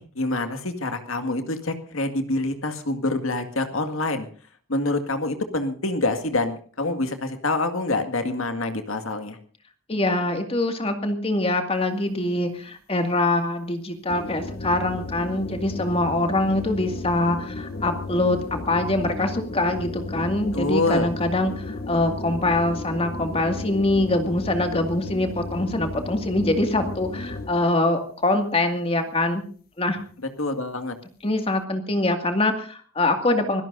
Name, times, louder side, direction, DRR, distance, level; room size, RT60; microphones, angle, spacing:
voice 1, 0.0-4.3 4.7-9.4 20.5-21.1 30.2-31.0, left 2 dB, 75° left, 7 dB, 2.0 m, -26 dB
voice 2, 9.9-29.4 29.8-30.0 31.2-33.6, left 2 dB, 25° left, 5 dB, 2.2 m, -24 dB
sound 1, 14.1-27.7, left 2 dB, 45° left, 0.9 m, -34 dB
25.0 x 17.0 x 2.6 m, 0.43 s
head